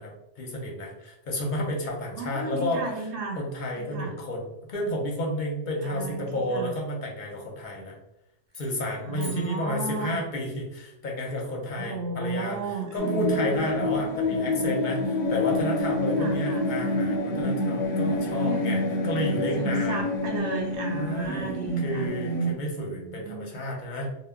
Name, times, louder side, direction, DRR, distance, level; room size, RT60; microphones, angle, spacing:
voice 1, 0.0-3.1 3.4-8.0 8.5-12.6 12.9-20.0 20.9-24.1, left 1 dB, 55° left, -1 dB, 0.6 m, -31 dB
voice 2, 2.1-3.4 3.7-4.1 5.8-6.7 9.1-10.2 11.8-13.9 16.2-16.7 18.2-18.8 19.6-22.1 22.9-23.6, right 4 dB, 60° right, 0 dB, 0.7 m, -34 dB
sound 1, 8.5-10.4, equal, 10° left, 0.6 m, -47 dB
sound 2, 13.0-22.5, left 1 dB, 90° left, 1.0 m, -27 dB
2.1 x 2.0 x 3.4 m, 0.87 s
omnidirectional pair, 1.2 m